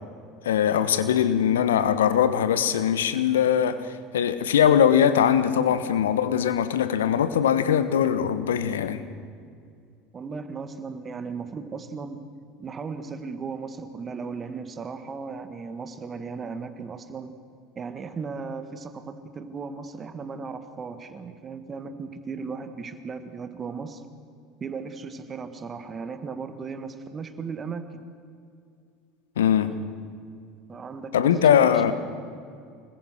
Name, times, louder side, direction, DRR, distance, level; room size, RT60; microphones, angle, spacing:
voice 1, 0.4-9.0 29.4-29.8 31.1-31.9, left 9 dB, 75° left, 12 dB, 1.2 m, -21 dB
voice 2, 10.1-12.2 12.6-17.3 17.8-24.0 24.6-28.0 30.7-31.5, right 5 dB, 30° right, 9 dB, 1.8 m, -36 dB
26.0 x 20.5 x 6.4 m, 2.3 s
hypercardioid pair, 75°, 0 cm